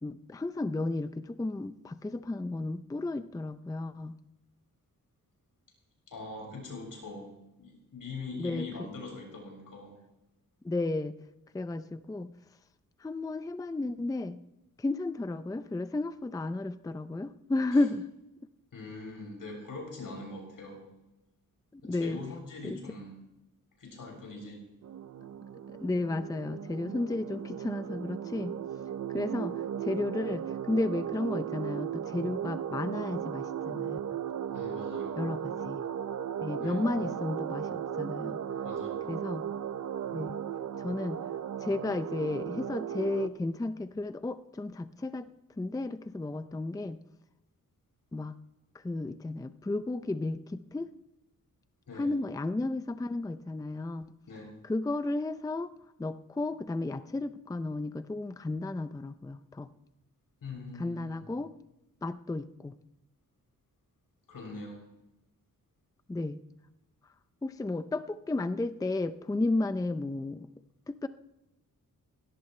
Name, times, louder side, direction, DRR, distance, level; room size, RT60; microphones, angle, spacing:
voice 1, 0.0-4.2 8.4-8.9 10.6-11.1 11.5-12.3 13.0-14.4 14.8-18.1 21.7-22.2 22.6-22.8 25.7-28.6 29.1-34.2 35.2-35.8 36.4-38.4 39.1-39.4 40.1-40.4 40.8-41.2 41.6-45.3 45.6-47.0 48.1-48.4 48.7-50.9 51.9-54.1 54.6-55.7 56.0-59.7 60.8-61.5 62.0-62.7 66.1-66.4 67.4-70.5 70.9-71.1, left 2 dB, 10° left, 11 dB, 0.5 m, -33 dB
voice 2, 6.1-10.0 18.7-20.8 21.8-23.1 23.8-24.7 34.5-35.2 36.6-36.8 38.6-39.0 51.9-52.1 54.3-54.5 60.4-61.3 64.3-64.8, left 3 dB, 80° left, 1 dB, 7.3 m, -42 dB
sound 1, 24.8-43.3, right 9 dB, 60° right, 0.7 m, -36 dB
19.5 x 18.0 x 3.2 m, 0.94 s
wide cardioid pair, 150°, 33 cm